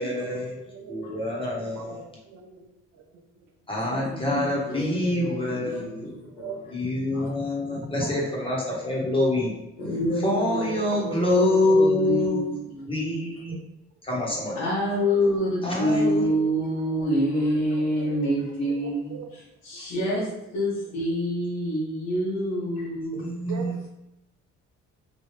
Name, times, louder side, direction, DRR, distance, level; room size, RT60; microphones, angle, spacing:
voice 1, 0.0-0.6 0.9-2.0 3.7-5.9 6.7-9.5 10.2-12.4 12.9-13.5 14.0-14.6 15.6-16.7 23.1-23.7, left 1 dB, 15° left, -4 dB, 1.2 m, -26 dB
voice 2, 0.7-1.0 1.4-2.5 6.4-6.6 8.0-8.1 8.4-8.5 18.0-18.3 19.1-19.3 23.5-23.9, right 6 dB, 65° right, 3 dB, 0.7 m, -39 dB
voice 3, 3.8-6.7 7.1-7.3 9.8-10.7 10.9-13.2 14.6-23.3, equal, 85° left, -9 dB, 1.2 m, -27 dB
3.2 x 2.6 x 3.3 m, 0.89 s
cardioid pair, 90°, 30 cm